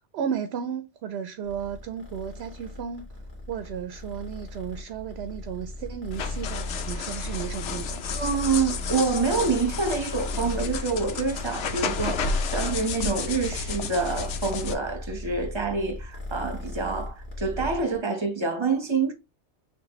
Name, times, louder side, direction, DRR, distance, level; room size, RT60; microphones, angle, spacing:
voice 1, 0.1-3.1 3.5-8.0, right 8 dB, 70° right, 0.8 m, -34 dB
Purr, 1.4-18.0, left 2 dB, 45° left, 1.7 m, -37 dB
sound 1, 6.1-14.7, left 5 dB, 90° left, 1.0 m, -32 dB
voice 2, 8.1-19.1, right 4 dB, 25° right, 1.0 m, -27 dB
6.1 x 2.6 x 3.0 m
omnidirectional pair, 1.2 m